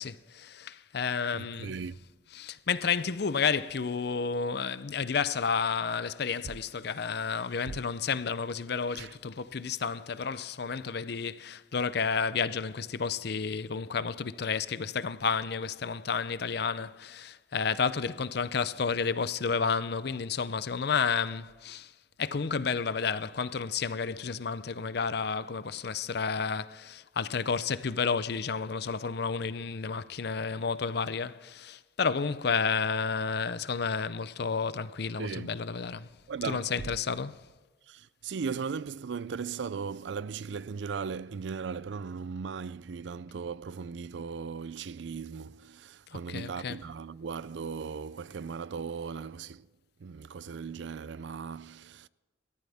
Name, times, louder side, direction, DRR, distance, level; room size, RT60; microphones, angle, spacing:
voice 1, 0.0-1.8 2.4-21.9 22.2-36.1 36.4-37.4 46.1-46.8, left 5 dB, 60° left, 0.6 m, -31 dB
voice 2, 1.3-2.0 7.7-7.8 8.9-9.2 35.2-35.5 36.3-36.9 37.9-49.7 50.0-52.1, right 5 dB, 70° right, 0.4 m, -37 dB
29.0 x 13.0 x 3.5 m
head